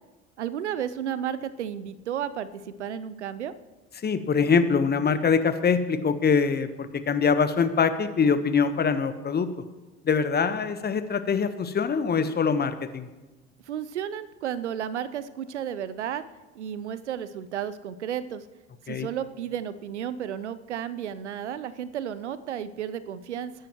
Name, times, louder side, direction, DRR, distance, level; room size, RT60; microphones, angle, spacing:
voice 1, 0.4-3.5 13.7-16.2 16.6-18.4 18.9-23.5, right 9 dB, 80° right, 15 dB, 0.6 m, -33 dB
voice 2, 4.0-9.5 10.0-13.1 18.9-19.1, left 5 dB, 30° left, 11 dB, 1.1 m, -24 dB
21.0 x 10.0 x 3.1 m, 1.2 s
figure-of-eight pair, 60°, 34 cm